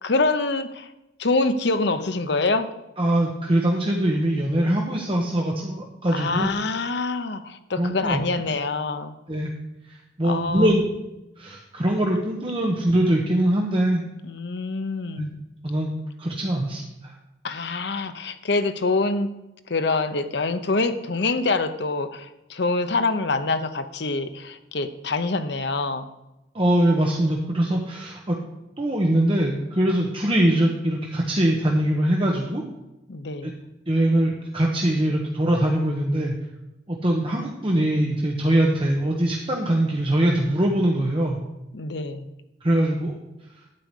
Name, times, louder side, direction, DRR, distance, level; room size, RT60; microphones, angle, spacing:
voice 1, 0.0-0.9 1.2-2.7 6.1-9.1 10.2-10.7 14.2-15.3 17.4-19.3 19.7-26.1 33.1-33.6 41.7-42.3, left 3 dB, 60° left, 10 dB, 0.8 m, -25 dB
voice 2, 3.0-6.5 7.8-8.2 9.3-9.5 9.9-10.9 11.4-14.0 15.1-15.3 15.6-17.1 26.5-28.4 28.8-32.6 33.4-33.5 33.9-36.3 36.9-41.4 42.6-43.1, right 1 dB, 30° right, 0 dB, 1.1 m, -22 dB
12.0 x 4.8 x 8.3 m, 0.95 s
head